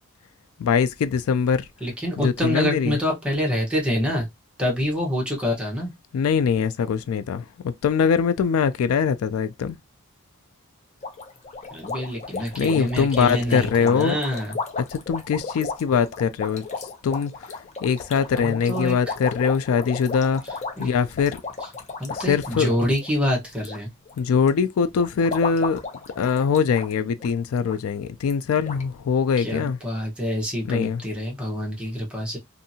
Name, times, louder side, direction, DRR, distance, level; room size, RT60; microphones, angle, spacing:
voice 1, 0.6-1.6 2.2-3.0 6.1-9.8 12.6-14.2 14.8-16.6 17.0-17.3 17.8-20.4 20.8-21.4 22.1-22.7 24.2-25.8 26.2-29.8 30.6-31.0, left 6 dB, 80° left, 0.3 m, -22 dB
voice 2, 1.8-4.3 4.6-5.9 11.7-14.6 18.4-19.0 20.8-20.9 22.0-23.9 29.4-32.4, equal, 5° right, 0.9 m, -26 dB
sound 1, 11.0-23.8 24.1-24.5 25.0-26.9 27.2-27.3 27.7-27.8 28.3-28.4 28.7-28.8, left 4 dB, 35° left, 0.6 m, -34 dB
2.7 x 2.5 x 2.7 m
head